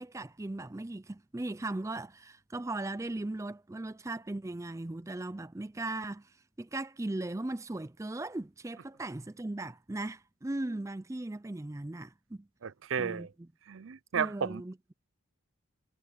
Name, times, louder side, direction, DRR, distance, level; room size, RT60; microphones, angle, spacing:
voice 1, 0.0-6.3 6.6-12.5 13.0-13.3 14.1-14.9, right 2 dB, 15° right, 0.4 m, -38 dB
voice 2, 12.6-13.3 13.7-14.6, right 6 dB, 75° right, 0.5 m, -33 dB
head